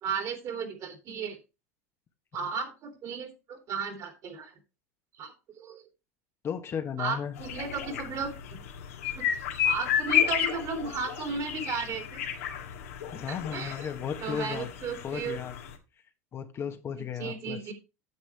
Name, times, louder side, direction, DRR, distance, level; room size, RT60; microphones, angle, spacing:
voice 1, 0.0-1.4 2.3-4.5 5.2-5.3 5.6-5.8 7.0-8.6 9.0-9.2 9.6-12.2 13.3-13.9 14.2-15.4 17.2-17.7, right 5 dB, 45° right, 5 dB, 3.1 m, -34 dB
voice 2, 6.4-7.4 13.1-14.7 15.0-15.6 16.3-17.7, left 7 dB, 35° left, 7 dB, 1.2 m, -35 dB
sound 1, 7.4-15.7, left 10 dB, 75° left, 1.8 m, -32 dB
9.6 x 7.5 x 3.4 m, 0.29 s
hypercardioid pair, 95°, 8 cm